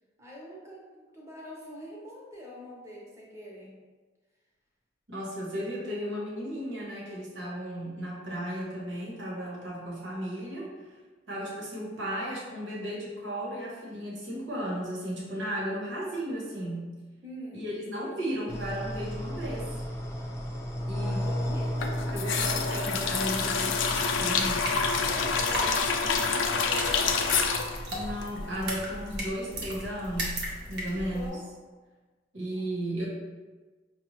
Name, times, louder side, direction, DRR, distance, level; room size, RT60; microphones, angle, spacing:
voice 1, 0.2-3.7 17.2-17.6 20.9-21.7 25.0-27.3 30.9-31.4 32.4-32.7, equal, 15° right, -4 dB, 0.8 m, -43 dB
voice 2, 5.1-10.9 11.3-16.9 17.5-19.7 20.9-21.2 22.1-24.6 27.9-31.3 32.3-33.1, equal, 80° right, -4 dB, 1.2 m, -35 dB
sound 1, 18.5-25.4, equal, 15° left, 0.4 m, -34 dB
sound 2, 21.8-28.8 29.1-29.2, left 5 dB, 85° left, 0.4 m, -28 dB
sound 3, 23.9-31.3, equal, 60° right, 0.9 m, -37 dB
5.2 x 2.3 x 3.0 m, 1.3 s
head